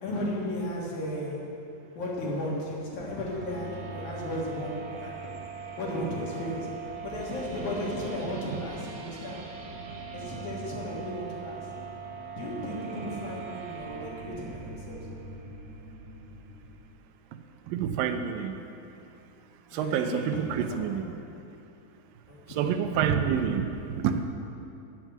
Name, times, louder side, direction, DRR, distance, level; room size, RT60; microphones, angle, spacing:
voice 1, 0.0-1.6 1.9-5.4 5.8-9.5 10.1-11.6 12.4-15.1 19.7-21.0 22.3-22.8, left 1 dB, 60° left, -4 dB, 2.9 m, -35 dB
sound 1, 2.9-16.9, right 5 dB, 55° right, 2.1 m, -41 dB
voice 2, 17.7-18.6 19.7-21.1 22.5-24.2, right 8 dB, 80° right, 7 dB, 2.3 m, -28 dB
10.5 x 7.4 x 7.4 m, 2.8 s
omnidirectional pair, 4.2 m